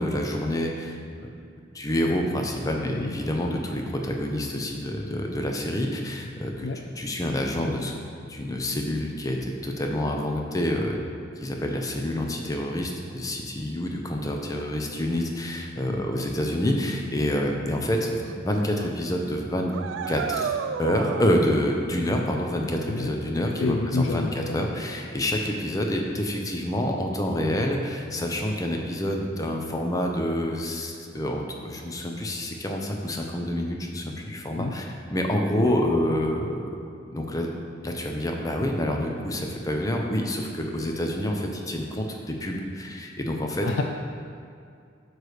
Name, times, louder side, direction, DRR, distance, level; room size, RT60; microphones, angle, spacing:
voice 1, 0.0-1.3 1.7-6.7 7.0-7.9 8.3-11.0 11.4-19.7 20.1-36.6 37.1-37.5 37.8-43.7, left 1 dB, 20° left, 1 dB, 0.6 m, -27 dB
voice 2, 15.9-16.2 22.9-23.1 23.6-24.7 34.6-34.7 43.6-43.8, left 3 dB, 75° left, 2 dB, 0.4 m, -28 dB
sound 1, 17.7-17.8 18.3-18.6 18.8-18.9 19.7-21.3, right 7 dB, 75° right, 0.3 m, -31 dB
8.9 x 3.3 x 6.5 m, 2.4 s
head